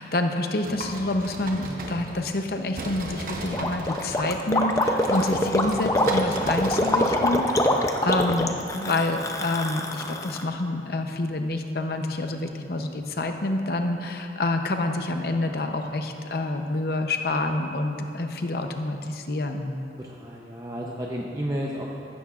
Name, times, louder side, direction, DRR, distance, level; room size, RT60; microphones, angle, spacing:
voice 1, 0.0-19.7, left 2 dB, 55° left, 5 dB, 0.7 m, -27 dB
sound 1, 0.6-2.5 2.7-7.3, right 2 dB, 50° right, 1.0 m, -37 dB
Gurgling, 3.5-10.4, left 1 dB, 15° left, 0.5 m, -24 dB
voice 2, 12.4-12.7 20.0-22.1, equal, 20° right, -3 dB, 0.7 m, -33 dB
15.0 x 12.5 x 2.4 m, 2.8 s
head